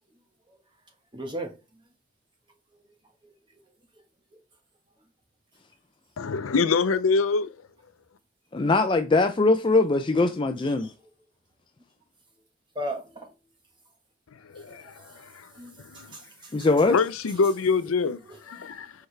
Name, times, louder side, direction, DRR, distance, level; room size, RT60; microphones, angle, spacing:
voice 1, 1.1-1.5 10.8-10.9 12.7-13.3 14.6-14.8 15.6-16.5 18.2-18.4, right 1 dB, 25° right, 1.2 m, -36 dB
voice 2, 6.2-7.5 14.5-14.9 16.0-16.1 16.9-18.2 18.5-18.9, left 4 dB, 90° left, 0.5 m, -24 dB
voice 3, 8.5-10.9 16.5-17.0, left 3 dB, 25° left, 0.4 m, -21 dB
6.6 x 4.5 x 3.3 m
head